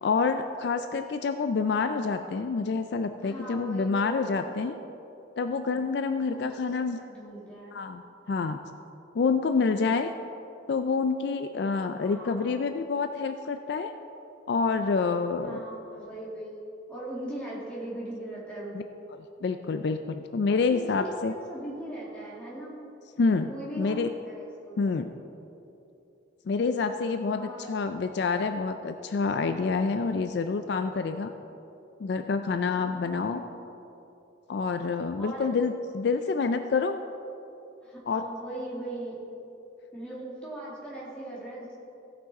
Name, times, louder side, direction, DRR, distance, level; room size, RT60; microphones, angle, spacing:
voice 1, 0.0-4.7 5.4-7.0 7.7-8.0 8.3-8.6 9.1-10.1 10.7-13.9 14.5-15.6 18.7-18.8 19.4-21.3 23.2-23.5 23.8-24.1 24.8-25.1 26.5-31.3 32.0-33.4 34.5-37.0 38.1-38.2, left 4 dB, 55° left, 8 dB, 0.3 m, -27 dB
voice 2, 3.2-4.5 6.3-6.7 7.0-7.8 12.0-12.7 15.4-16.6 16.9-18.8 20.5-22.8 23.5-24.9 27.3-27.8 32.8-33.6 35.2-35.5 37.8-39.2 39.9-41.8, right 1 dB, 5° left, -7 dB, 2.3 m, -40 dB
16.0 x 6.1 x 4.1 m, 2.9 s
head